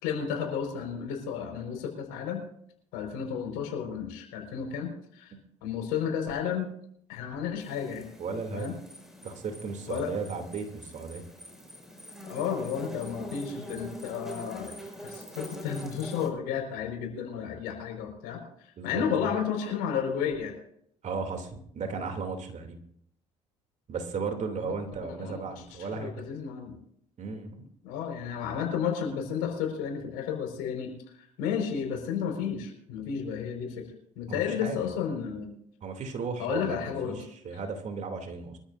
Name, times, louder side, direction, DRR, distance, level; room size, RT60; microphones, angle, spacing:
voice 1, 0.0-2.4 2.9-5.3 5.6-6.6 7.1-8.0 8.5-8.8 9.9-10.1 12.2-14.7 15.0-20.5 24.6-24.7 25.2-25.4 25.7-26.8 27.8-30.9 31.4-33.9 34.1-35.6 36.4-37.3, left 7 dB, 70° left, 2 dB, 4.8 m, -32 dB
sound 1, 7.6-16.3, right 1 dB, ahead, 5.8 m, -44 dB
voice 2, 8.2-8.7 9.2-11.2 18.8-19.0 21.0-22.8 23.9-26.1 27.2-27.7 34.3-34.8 35.8-38.6, right 5 dB, 50° right, 4 dB, 2.9 m, -35 dB
24.5 x 13.5 x 2.6 m, 0.68 s
hypercardioid pair, 60°, 16 cm